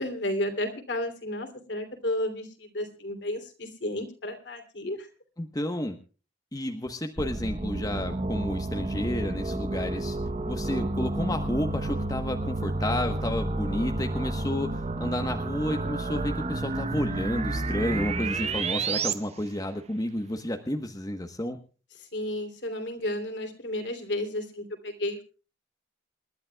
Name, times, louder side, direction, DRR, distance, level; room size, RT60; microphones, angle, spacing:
voice 1, 0.0-5.1 22.1-25.2, left 1 dB, 60° left, 5 dB, 3.1 m, -32 dB
voice 2, 5.4-6.0 6.5-10.2 10.5-21.6, left 1 dB, 20° left, 5 dB, 1.1 m, -31 dB
warpdrive-medium, 7.2-19.1, right 2 dB, 35° right, 0.9 m, -30 dB
28.0 x 12.0 x 2.3 m, 0.36 s
head